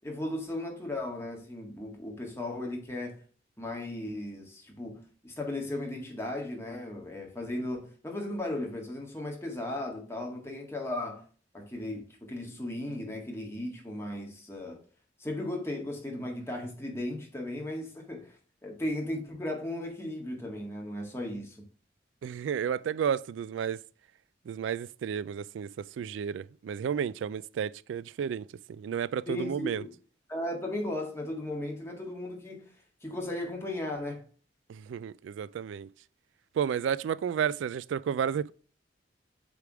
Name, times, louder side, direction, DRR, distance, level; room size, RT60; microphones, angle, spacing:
voice 1, 0.0-3.2 3.6-11.2 11.5-14.8 15.2-18.4 18.6-21.6 29.3-29.9 30.3-32.7 33.0-34.2, left 1 dB, 15° left, 1.7 m, -36 dB
voice 2, 22.2-23.8 24.5-25.7 26.0-29.8 34.7-35.9 36.6-38.5, right 8 dB, 90° right, 0.3 m, -32 dB
8.1 x 3.5 x 4.6 m
head